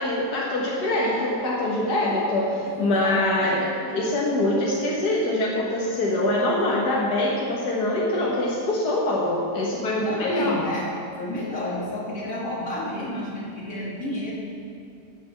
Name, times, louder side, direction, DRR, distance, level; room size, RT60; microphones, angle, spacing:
voice 1, 0.0-3.6 3.9-10.6, left 1 dB, 75° left, -4 dB, 1.9 m, -24 dB
voice 2, 2.7-3.9 10.0-10.9 11.2-14.3, left 1 dB, 55° left, -5 dB, 2.5 m, -31 dB
16.5 x 6.9 x 5.7 m, 2.5 s
omnidirectional pair, 1.8 m